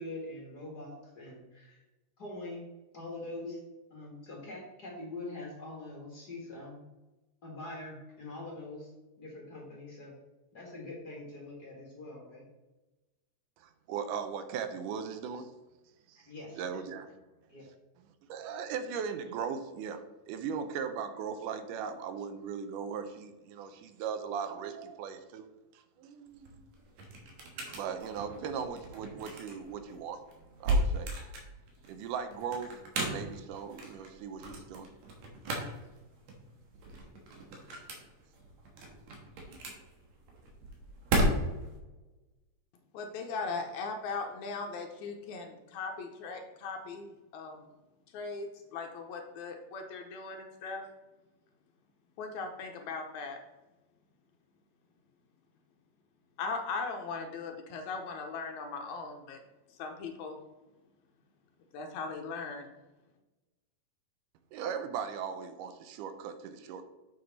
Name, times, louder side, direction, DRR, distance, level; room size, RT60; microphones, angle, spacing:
voice 1, 0.0-1.8 2.2-2.7 2.9-3.6 3.9-6.8 7.4-8.9 9.2-10.2 10.5-12.5 16.2-16.6 17.5-17.7, left 2 dB, 40° left, -2 dB, 1.6 m, -43 dB
voice 2, 13.6-15.5 16.1-16.2 16.6-17.1 18.3-25.5 25.7-26.7 27.7-30.2 30.6-31.1 31.9-32.7 33.0-34.9 64.5-66.9, right 7 dB, 80° right, 10 dB, 2.2 m, -38 dB
sound 1, 26.3-41.8, right 1 dB, 65° right, 2.5 m, -35 dB
voice 3, 42.9-47.7 48.1-50.9 52.2-53.4 56.4-59.4 59.7-60.4 61.7-62.7, left 4 dB, 75° left, 3 dB, 1.9 m, -39 dB
6.9 x 6.9 x 4.0 m, 1.1 s
omnidirectional pair, 3.7 m